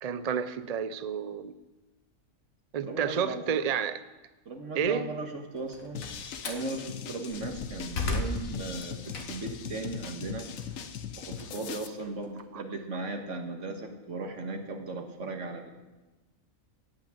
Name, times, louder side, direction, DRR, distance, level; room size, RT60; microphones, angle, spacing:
voice 1, 0.0-1.5 2.7-4.0 4.7-5.1 12.5-12.6, right 7 dB, 50° right, 12 dB, 0.5 m, -30 dB
voice 2, 2.8-3.4 4.4-6.1 6.4-10.5 11.2-15.7, right 3 dB, 65° right, 4 dB, 1.8 m, -37 dB
Slam, 5.6-6.7 7.2-9.6 10.0-12.4, left 3 dB, 90° left, 1.8 m, -36 dB
sound 1, 5.9-11.9, left 7 dB, 75° left, 1.2 m, -40 dB
16.0 x 6.1 x 8.9 m, 1.1 s
omnidirectional pair, 1.4 m